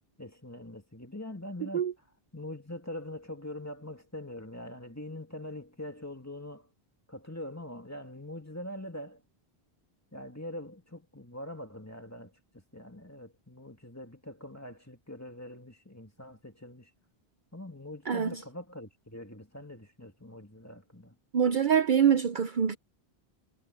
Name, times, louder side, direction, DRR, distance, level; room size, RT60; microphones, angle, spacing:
voice 1, 0.2-1.9 2.3-6.7 7.1-9.2 10.1-16.9 17.5-21.1, left 1 dB, 15° left, 2.6 m, -43 dB
voice 2, 1.6-1.9 18.1-18.4 21.3-22.8, right 8 dB, 55° right, 0.8 m, -25 dB
omnidirectional pair, 1.0 m